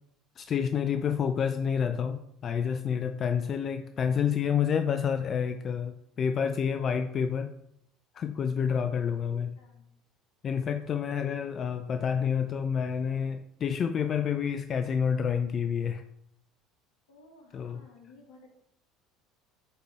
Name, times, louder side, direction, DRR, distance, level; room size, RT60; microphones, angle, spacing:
voice 1, 0.4-7.5 8.1-9.6 10.4-16.0 17.5-17.8, left 7 dB, 40° left, 0.4 m, -29 dB
voice 2, 9.6-9.9 17.1-18.5, left 3 dB, 80° left, 1.7 m, -55 dB
9.8 x 3.9 x 3.4 m
hypercardioid pair, 75°, 0 cm